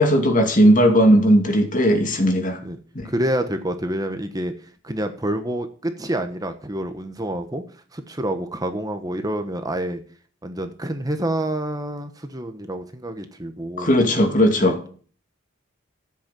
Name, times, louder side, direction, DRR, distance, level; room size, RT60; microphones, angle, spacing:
voice 1, 0.0-2.6 2.9-3.1 13.8-14.9, equal, 40° left, 2.6 m, -17 dB
voice 2, 3.0-4.5 4.8-7.6 7.9-10.0 10.4-13.9 14.6-14.9, right 1 dB, 20° right, 1.2 m, -27 dB
14.5 x 8.2 x 7.7 m
head